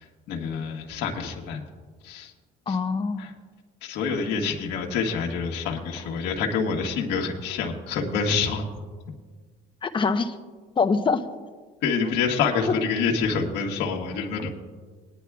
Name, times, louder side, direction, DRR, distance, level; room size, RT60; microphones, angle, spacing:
voice 1, 0.0-1.6 2.0-2.3 2.7-2.8 3.2-3.3 3.8-8.7 11.8-14.5, left 5 dB, 85° left, 0 dB, 1.5 m, -27 dB
voice 2, 2.7-3.2 9.8-10.3 10.8-11.2 14.4-14.5, left 4 dB, 30° left, 7 dB, 0.8 m, -24 dB
21.0 x 10.5 x 2.4 m, 1.4 s
cardioid pair, 110°, 17 cm